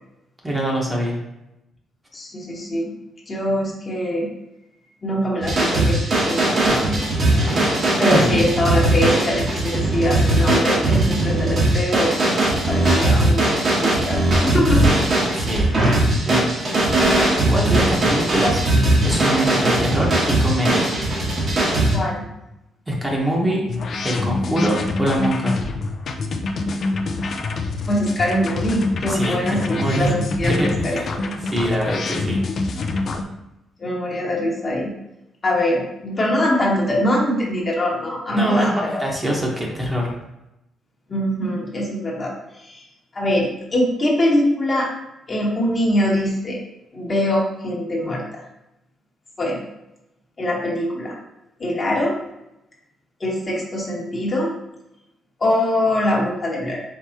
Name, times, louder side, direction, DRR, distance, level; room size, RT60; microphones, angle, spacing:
voice 1, 0.4-1.2 7.4-7.7 8.1-8.5 15.3-15.7 16.2-16.8 17.5-18.6 19.0-20.9 22.9-23.6 24.0-25.6 29.0-30.1 30.4-32.4 38.3-40.1, equal, 15° right, -2 dB, 1.1 m, -23 dB
voice 2, 2.1-2.9 3.3-4.3 5.0-7.0 7.3-7.7 8.0-14.8 21.9-22.2 27.9-29.6 29.9-31.3 33.8-34.9 35.4-39.0 41.1-42.9 43.1-44.9 45.3-46.6 46.9-48.4 49.4-49.6 50.4-51.2 51.6-52.1 53.2-54.5 55.4-56.8, left 1 dB, 35° left, -3 dB, 1.1 m, -23 dB
sound 1, 5.4-21.9, right 1 dB, 50° right, 1.4 m, -19 dB
sound 2, 23.7-33.2, left 3 dB, 55° left, 0.5 m, -26 dB
4.6 x 3.3 x 2.8 m, 0.91 s
cardioid pair, 90°, 0 cm